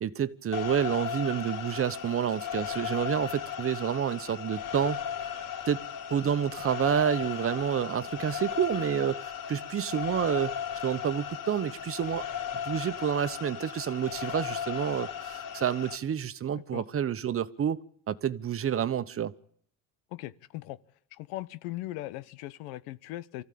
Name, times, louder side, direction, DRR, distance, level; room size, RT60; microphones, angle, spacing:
voice 1, 0.0-5.0 5.7-5.8 6.1-10.5 10.8-12.3 12.6-19.3, right 9 dB, 35° right, 1.2 m, -29 dB
sound 1, 0.5-16.0, left 9 dB, 55° left, 3.9 m, -36 dB
voice 2, 20.1-20.8 21.1-23.4, left 16 dB, 85° left, 1.2 m, -39 dB
24.5 x 15.0 x 8.7 m
cardioid pair, 110°, 38 cm